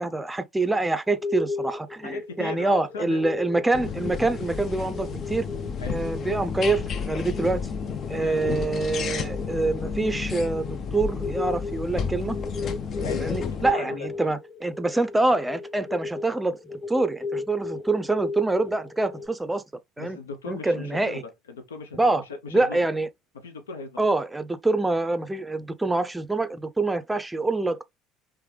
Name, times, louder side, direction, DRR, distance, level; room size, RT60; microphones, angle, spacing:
voice 1, 0.0-5.5 5.9-7.7 8.1-12.4 13.2-16.6 16.9-19.6 20.0-20.2 20.5-21.2 22.0-22.2 22.5-23.1 24.0-27.8, right 2 dB, 10° right, 0.5 m, -25 dB
sound 1, 1.1-19.3, left 3 dB, 10° left, 1.1 m, -36 dB
voice 2, 2.0-3.2 5.8-6.0 8.1-8.4 12.9-14.4 20.0-22.8 23.3-24.0, left 3 dB, 85° left, 0.6 m, -38 dB
sound 2, 3.7-13.7, left 6 dB, 45° left, 0.5 m, -32 dB
3.3 x 3.1 x 3.3 m
hypercardioid pair, 70°, 0 cm